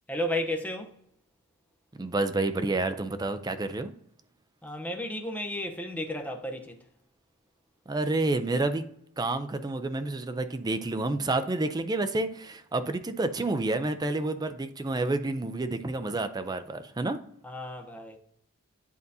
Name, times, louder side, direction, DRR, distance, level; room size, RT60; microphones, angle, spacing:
voice 1, 0.1-1.0 4.6-6.8 17.4-18.2, left 1 dB, 5° left, 0.8 m, -33 dB
voice 2, 1.9-3.9 7.9-8.8 9.2-17.2, right 2 dB, 20° right, 0.4 m, -29 dB
11.0 x 3.9 x 2.7 m
head